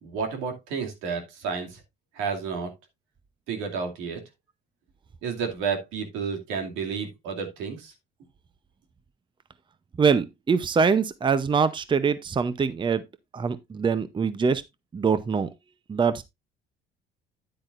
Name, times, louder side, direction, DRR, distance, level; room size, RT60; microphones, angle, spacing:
voice 1, 0.0-1.8 2.1-2.7 3.5-4.2 5.2-7.9, right 5 dB, 85° right, 2.4 m, -31 dB
voice 2, 10.0-13.0 13.3-14.6 14.9-15.5 15.9-16.2, right 5 dB, 25° right, 0.7 m, -23 dB
9.8 x 8.7 x 2.5 m
cardioid pair, 95°, 20 cm